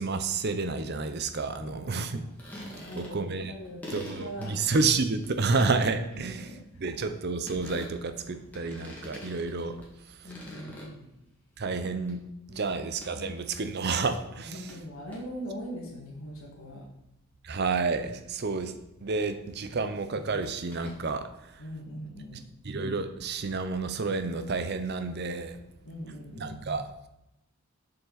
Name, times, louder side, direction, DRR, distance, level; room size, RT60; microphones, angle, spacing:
voice 1, 0.0-2.3 2.9-3.5 3.9-6.4 6.8-9.8 11.6-12.2 12.5-14.7 17.4-18.7 19.0-21.3 22.6-25.6 26.4-26.9, right 4 dB, 45° right, 10 dB, 0.6 m, -30 dB
voice 2, 1.5-2.3 2.7-4.6 6.1-7.0 10.2-11.1 12.5-12.7 13.1-13.3 14.4-16.9 21.6-22.4 25.8-26.6, equal, 65° left, -3 dB, 1.8 m, -42 dB
sound 1, 2.2-3.4 3.6-10.0 10.2-11.3 11.6-12.1 13.0-13.1 14.3-14.4 14.7-14.8 15.1-15.2 20.4-21.0, left 1 dB, 5° left, 1.8 m, -45 dB
6.8 x 6.8 x 4.0 m, 0.87 s
head